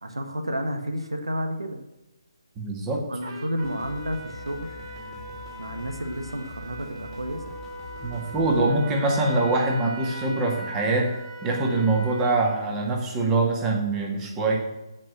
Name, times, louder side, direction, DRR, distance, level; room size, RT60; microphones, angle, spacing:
voice 1, 0.0-1.8 3.1-4.7 5.6-7.4, equal, 80° right, 5 dB, 1.7 m, -31 dB
voice 2, 2.6-3.1 8.0-14.6, right 2 dB, 15° right, 1 dB, 2.0 m, -24 dB
Trumpet, 3.2-12.8, right 1 dB, 35° right, 2.4 m, -40 dB
sound 1, 3.6-8.6, left 1 dB, 10° left, 2.3 m, -43 dB
16.0 x 5.4 x 6.3 m, 0.99 s
figure-of-eight pair, 145°, 3 cm